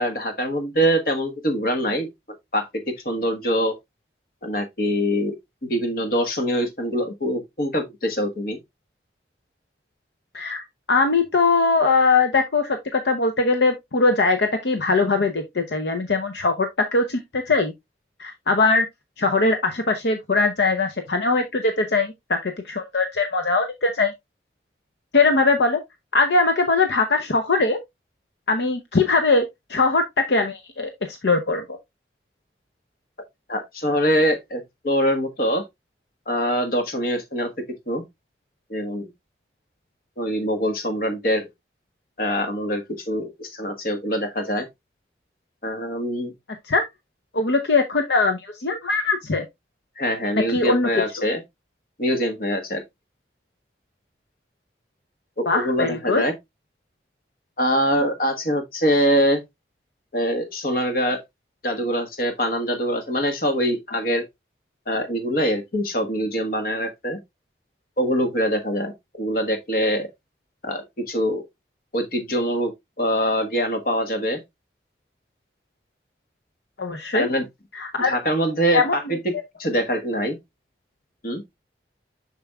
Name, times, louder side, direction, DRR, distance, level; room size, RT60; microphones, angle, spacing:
voice 1, 0.0-2.1 2.5-3.7 4.4-5.4 5.6-8.6 33.5-35.6 36.3-37.5 37.9-38.0 38.7-39.1 40.2-41.5 42.2-44.7 45.6-46.3 50.0-51.4 52.0-52.8 55.4-56.3 57.6-59.4 60.1-61.2 61.6-64.2 64.9-67.2 68.0-70.1 70.6-71.4 71.9-72.7 73.0-74.4 77.1-77.4 78.0-79.3 79.6-80.4 81.2-81.4, equal, 55° left, 1.4 m, -24 dB
voice 2, 10.9-17.7 18.2-18.9 19.2-24.1 25.1-25.8 26.1-27.8 28.5-29.4 29.7-31.8 46.7-46.9 47.3-49.4 50.4-50.9 55.5-56.2 76.8-77.3 77.7-78.2 78.7-79.2, left 3 dB, 75° left, 0.7 m, -21 dB
6.9 x 6.1 x 2.3 m
head